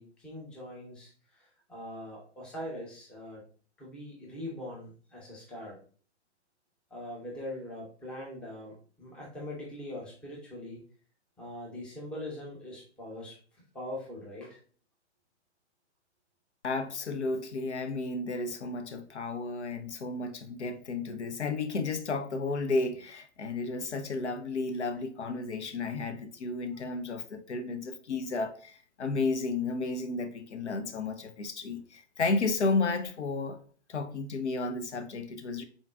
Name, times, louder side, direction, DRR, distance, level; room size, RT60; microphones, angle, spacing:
voice 1, 0.0-3.4 3.8-5.8 6.9-10.8 11.4-14.6 26.7-26.8, left 1 dB, 5° left, 0.6 m, -42 dB
voice 2, 16.6-33.6 33.9-35.6, left 3 dB, 70° left, 0.6 m, -32 dB
3.7 x 3.6 x 2.3 m
figure-of-eight pair, 120°, 35 cm